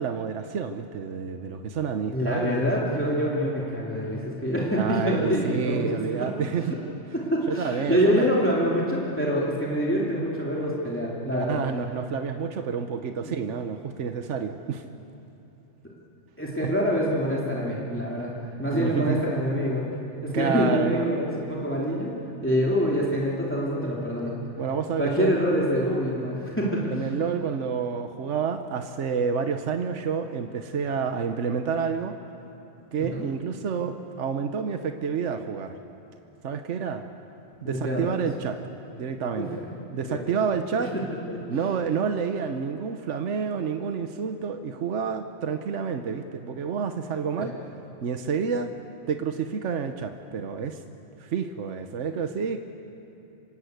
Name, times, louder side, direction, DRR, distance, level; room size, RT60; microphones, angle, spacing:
voice 1, 0.0-2.7 4.7-6.7 7.5-8.3 11.4-14.8 16.6-16.7 18.7-19.2 20.3-21.1 24.6-25.4 26.9-32.2 32.9-35.7 36.4-37.0 37.6-38.6 39.0-39.6 39.9-40.9 41.5-47.5 48.0-48.7 49.1-50.8 51.2-52.6, right 6 dB, 75° right, 7 dB, 1.2 m, -29 dB
voice 2, 2.1-6.3 7.1-11.6 13.2-13.4 16.4-18.3 18.6-19.8 20.2-22.1 22.4-24.3 25.0-27.1 33.0-33.2 37.6-38.1 39.4-39.5 39.9-40.3 40.8-41.0 41.3-41.4 47.4-47.5, equal, 10° left, -5 dB, 2.8 m, -26 dB
26.5 x 20.0 x 8.0 m, 2.9 s
omnidirectional pair, 1.2 m